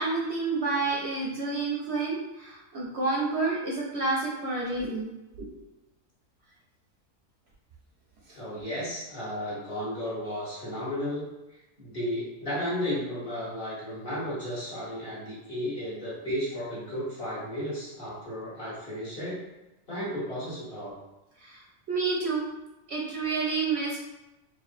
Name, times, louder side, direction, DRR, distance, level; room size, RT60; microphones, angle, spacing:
voice 1, 0.0-5.1 5.4-5.5 21.4-21.6 21.9-22.4 22.9-24.0, right 3 dB, 65° right, -3 dB, 0.8 m, -29 dB
voice 2, 8.3-11.3 11.8-19.4 19.9-21.0, equal, 45° left, -10 dB, 1.6 m, -33 dB
4.3 x 2.6 x 2.6 m, 1.0 s
omnidirectional pair, 1.4 m